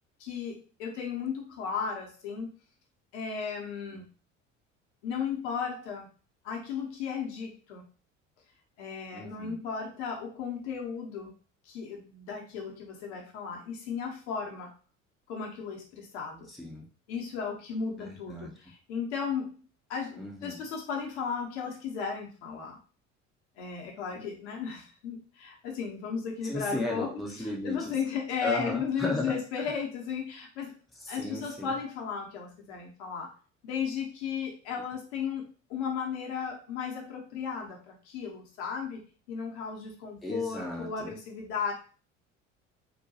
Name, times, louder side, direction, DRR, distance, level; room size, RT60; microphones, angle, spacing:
voice 1, 0.2-2.5 3.1-4.1 5.0-6.1 6.4-7.9 8.8-11.3 11.7-14.7 15.3-16.5 17.1-19.6 19.9-22.8 23.6-27.1 27.6-30.7 31.1-33.3 33.6-39.0 39.3-41.7, left 6 dB, 60° left, 0 dB, 0.9 m, -35 dB
voice 2, 9.1-9.6 16.5-16.9 18.0-18.5 20.1-20.6 24.1-24.3 26.4-27.9 28.4-29.7 31.0-31.7 40.2-41.1, left 2 dB, ahead, -1 dB, 0.6 m, -36 dB
2.8 x 2.2 x 2.7 m, 0.37 s
figure-of-eight pair, 60°, 38 cm